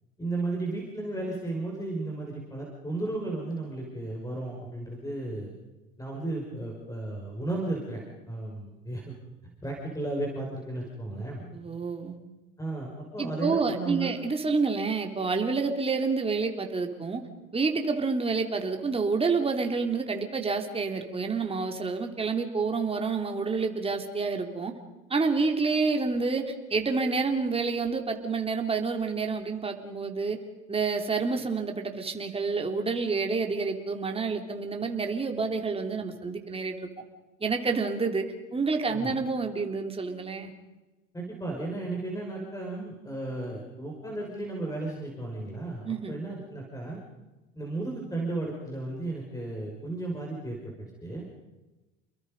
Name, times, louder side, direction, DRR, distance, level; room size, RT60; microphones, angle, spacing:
voice 1, 0.2-5.5 6.0-9.1 9.6-11.4 12.6-14.2 38.9-39.1 41.1-47.0 47.5-51.2, right 2 dB, 10° left, -1 dB, 5.9 m, -34 dB
voice 2, 11.5-12.2 13.2-17.2 17.5-24.7 25.1-30.4 30.7-36.9 37.4-40.5 45.8-46.2, right 4 dB, 20° right, 4 dB, 3.1 m, -28 dB
30.0 x 22.0 x 5.4 m, 1.1 s
supercardioid pair, 90°, 29 cm